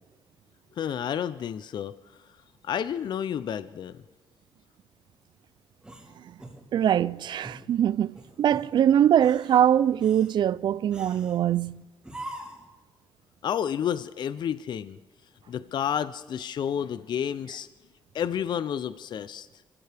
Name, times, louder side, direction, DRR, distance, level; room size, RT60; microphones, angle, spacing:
voice 1, 0.8-1.9 2.6-4.0 13.4-15.0 15.5-17.7 18.1-19.5, left 9 dB, 60° left, 0.5 m, -30 dB
sound 1, 5.8-7.0 7.4-7.7 8.1-8.7 9.1-9.6 10.0-10.3 10.9-11.4 12.0-12.7, right 1 dB, 10° right, 3.8 m, -43 dB
voice 2, 6.7-11.8, right 10 dB, 60° right, 0.4 m, -22 dB
25.5 x 15.5 x 3.4 m
cardioid pair, 110°, 9 cm